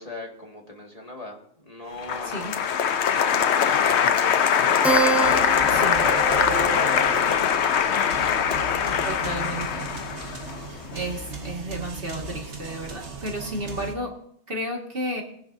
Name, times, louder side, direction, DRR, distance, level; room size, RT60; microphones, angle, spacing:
voice 1, 0.0-2.3 3.1-4.7 5.2-5.9 6.6-7.6 8.2-8.7, left 1 dB, 35° left, 0 dB, 2.1 m, -40 dB
Applause, 2.0-11.1, left 8 dB, 75° left, 1.0 m, -22 dB
Keyboard (musical), 4.8-9.8, right 6 dB, ahead, 0.6 m, -30 dB
sound 1, 5.2-13.9, right 3 dB, 80° right, 1.7 m, -37 dB
voice 2, 5.7-6.1 9.0-9.9 10.9-14.1 14.5-15.2, right 1 dB, 55° right, 1 dB, 2.1 m, -32 dB
21.5 x 10.5 x 2.7 m, 0.68 s
omnidirectional pair, 1.1 m